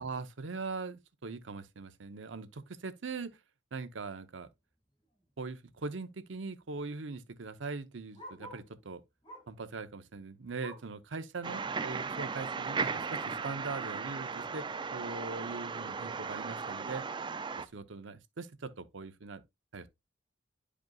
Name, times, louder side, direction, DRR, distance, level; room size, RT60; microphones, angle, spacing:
voice 1, 0.0-3.4 3.7-4.5 5.4-9.0 9.5-17.1 17.6-19.4 19.7-19.9, right 4 dB, 70° right, 0.7 m, -41 dB
Bark, 5.0-5.3 5.6-5.7 5.9-8.8 9.2-9.6 10.0-11.0 11.5-11.6 12.0-12.1 12.7-12.8, equal, 25° left, 3.5 m, -52 dB
sound 1, 11.4-17.7, right 5 dB, 25° right, 0.4 m, -36 dB
10.5 x 5.1 x 2.3 m
head